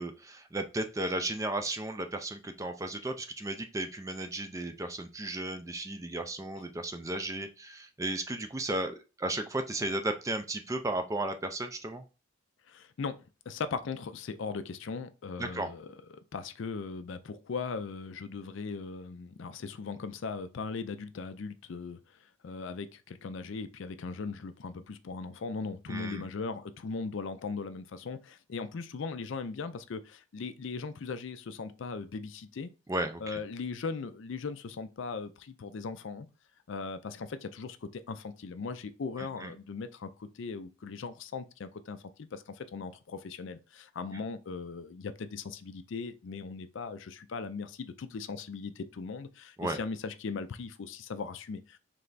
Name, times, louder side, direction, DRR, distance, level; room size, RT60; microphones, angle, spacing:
voice 1, 0.0-12.0 15.4-15.7 25.9-26.2 32.9-33.4 39.2-39.5 49.6-49.8, right 2 dB, 15° right, 0.4 m, -34 dB
voice 2, 12.7-13.2 13.5-15.9 16.3-22.0 22.4-32.7 33.2-36.3 36.7-51.8, left 4 dB, 60° left, 0.4 m, -39 dB
3.3 x 3.3 x 3.9 m
head